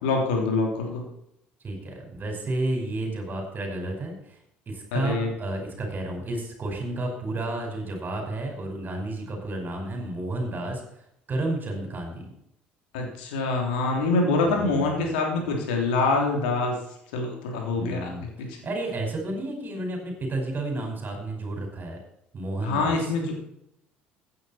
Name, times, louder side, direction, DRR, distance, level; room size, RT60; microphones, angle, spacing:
voice 1, 0.0-1.0 4.9-5.3 12.9-16.7 17.1-18.5 22.6-23.5, left 3 dB, 75° left, 2 dB, 3.3 m, -25 dB
voice 2, 1.6-4.4 4.7-10.8 11.3-12.3 14.4-15.1 17.7-18.3 18.6-22.0 22.3-23.1, right 2 dB, 35° right, 3 dB, 5.2 m, -31 dB
16.0 x 9.4 x 4.3 m, 0.77 s
hypercardioid pair, 60°, 5 cm